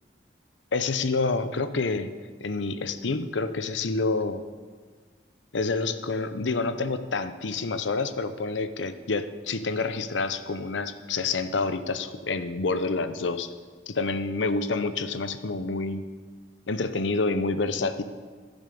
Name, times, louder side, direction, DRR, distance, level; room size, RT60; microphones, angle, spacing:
voice 1, 0.7-2.1 2.4-4.4 5.5-13.5 13.9-16.1 16.7-18.0, left 3 dB, 90° left, 11 dB, 0.8 m, -28 dB
14.0 x 7.3 x 6.7 m, 1.5 s
head